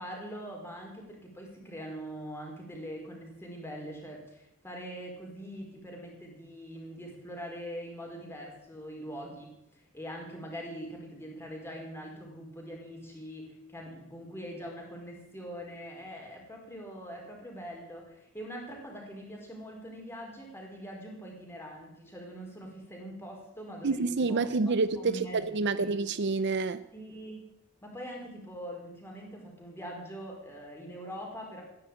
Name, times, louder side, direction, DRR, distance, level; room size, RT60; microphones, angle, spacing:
voice 1, 0.0-24.4 25.0-25.9 26.9-27.4 27.8-31.6, equal, 10° left, 4.6 m, -43 dB
voice 2, 23.8-26.8, right 3 dB, 55° right, 0.6 m, -28 dB
15.5 x 10.5 x 8.6 m
head